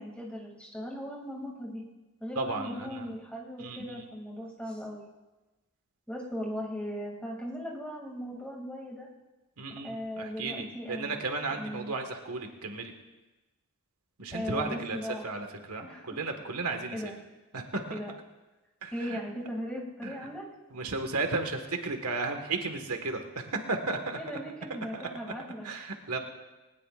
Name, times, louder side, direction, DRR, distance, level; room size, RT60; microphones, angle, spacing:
voice 1, 0.0-1.8 2.2-5.1 6.1-9.1 9.8-11.2 11.6-11.9 14.3-15.3 15.8-16.2 16.9-17.2 17.9-18.1 18.9-20.5 24.2-25.9, equal, 5° left, -2 dB, 2.6 m, -38 dB
voice 2, 2.3-3.1 3.6-4.0 9.6-12.9 14.2-15.0 15.2-17.0 17.5-18.0 18.8-19.2 20.0-20.1 20.7-24.4 24.9-25.0 25.6-26.2, right 3 dB, 90° right, 4 dB, 1.7 m, -34 dB
20.0 x 19.0 x 2.5 m, 1.1 s
head